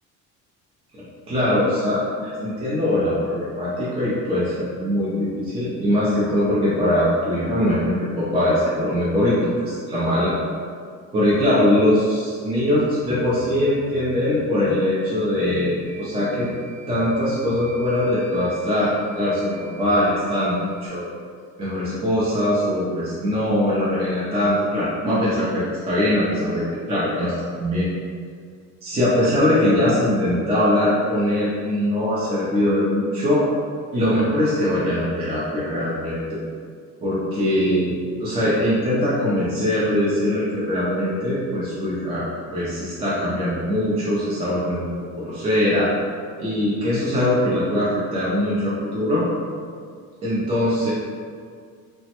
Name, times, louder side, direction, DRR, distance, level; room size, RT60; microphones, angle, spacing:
voice 1, 0.9-10.3 11.1-16.5 16.9-21.1 21.6-27.9 28.8-33.4 33.9-36.4 37.0-42.3 42.5-45.9 46.4-49.3 50.2-50.9, left 1 dB, 20° right, -9 dB, 0.3 m, -22 dB
sound 1, 15.8-20.9, right 4 dB, 85° right, 1.5 m, -46 dB
3.1 x 2.0 x 2.8 m, 2.1 s
cardioid pair, 160°, 35 cm